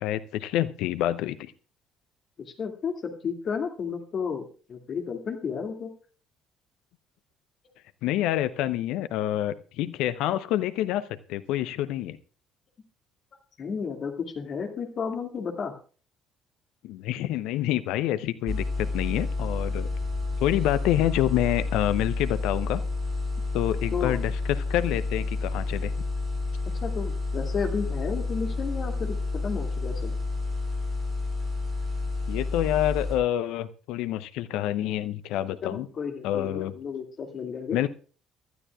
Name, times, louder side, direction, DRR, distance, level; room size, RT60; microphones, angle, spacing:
voice 1, 0.0-1.5 8.0-11.0 11.3-12.2 16.8-19.9 20.4-22.8 23.5-25.9 32.3-35.9 36.2-36.7 37.7-37.9, left 13 dB, 65° left, 14 dB, 0.7 m, -27 dB
voice 2, 2.6-4.4 4.7-5.9 13.6-15.7 23.9-24.2 26.8-30.1 35.6-37.8, left 6 dB, 45° left, 4 dB, 2.3 m, -32 dB
sound 1, 18.5-33.2, left 3 dB, 40° right, 5.2 m, -30 dB
24.0 x 12.5 x 2.4 m, 0.39 s
hypercardioid pair, 50°, 0 cm